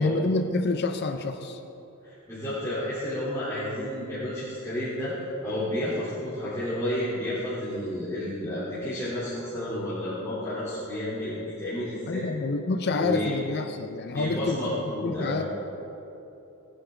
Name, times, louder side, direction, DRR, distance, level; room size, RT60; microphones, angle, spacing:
voice 1, 0.0-1.6 12.1-14.6 15.0-15.4, left 3 dB, 50° left, 7 dB, 0.6 m, -27 dB
voice 2, 2.0-5.1 5.4-12.3 12.9-13.3 14.1-15.4, left 1 dB, 15° left, -14 dB, 3.5 m, -31 dB
19.5 x 10.0 x 3.9 m, 3.0 s
head